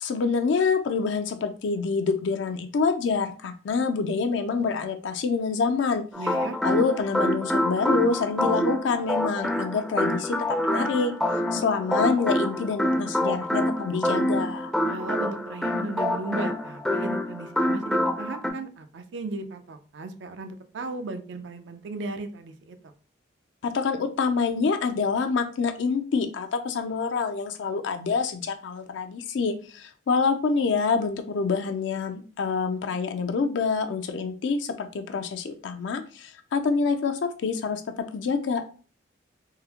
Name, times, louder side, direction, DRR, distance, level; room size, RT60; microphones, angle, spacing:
voice 1, 0.0-6.0 6.6-11.1 11.5-14.7 23.6-38.7, left 5 dB, 80° left, 8 dB, 0.4 m, -26 dB
sound 1, 6.1-18.5, left 1 dB, 5° left, 0.4 m, -26 dB
voice 2, 6.2-6.6 14.8-22.9, right 3 dB, 80° right, 8 dB, 0.4 m, -36 dB
3.7 x 2.0 x 2.8 m, 0.38 s
head